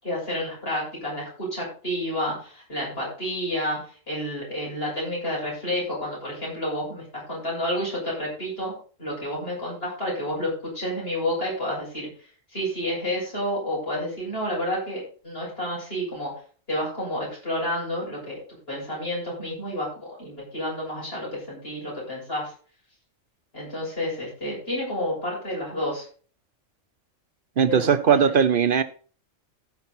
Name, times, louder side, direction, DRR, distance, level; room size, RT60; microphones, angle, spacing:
voice 1, 0.0-8.7 9.0-12.1 12.5-16.3 16.7-18.4 18.7-22.5 23.5-26.1 27.6-28.4, left 1 dB, 50° left, 7.2 m, -30 dB
voice 2, 27.6-28.8, right 7 dB, 55° right, 0.7 m, -19 dB
16.0 x 5.9 x 4.1 m
omnidirectional pair, 1.3 m